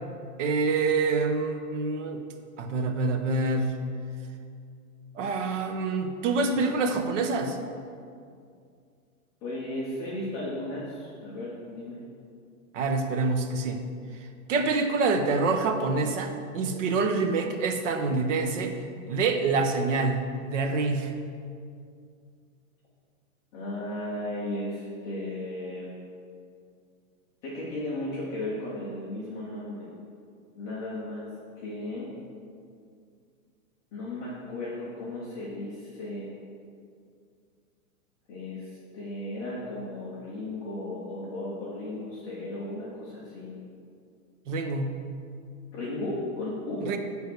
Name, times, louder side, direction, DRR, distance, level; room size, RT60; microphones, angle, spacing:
voice 1, 0.4-2.2 2.6-3.8 5.2-7.6 12.7-13.8 14.5-18.7 19.1-21.1 44.5-44.9 46.8-47.0, right 3 dB, 55° right, 6 dB, 0.9 m, -26 dB
voice 2, 9.4-12.0 23.5-25.9 27.4-29.9 30.5-31.3 31.6-32.1 33.9-36.3 38.3-43.5 45.7-46.9, left 1 dB, 10° left, -9 dB, 0.4 m, -35 dB
9.0 x 3.4 x 6.5 m, 2.3 s
hypercardioid pair, 155°, 43 cm